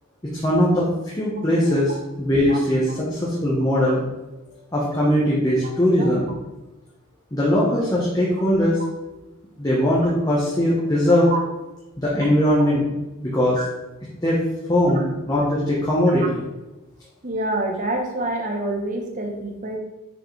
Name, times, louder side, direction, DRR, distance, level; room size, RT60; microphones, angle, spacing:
voice 1, 0.3-0.9 1.1-4.0 4.7-6.3 7.3-8.8 9.6-11.3 12.0-12.9 13.2-13.6 14.2-14.4 14.7-16.4, equal, 20° left, -6 dB, 1.1 m, -20 dB
voice 2, 17.2-19.8, right 2 dB, 35° right, 2 dB, 1.0 m, -27 dB
6.5 x 5.7 x 3.3 m, 1.0 s
head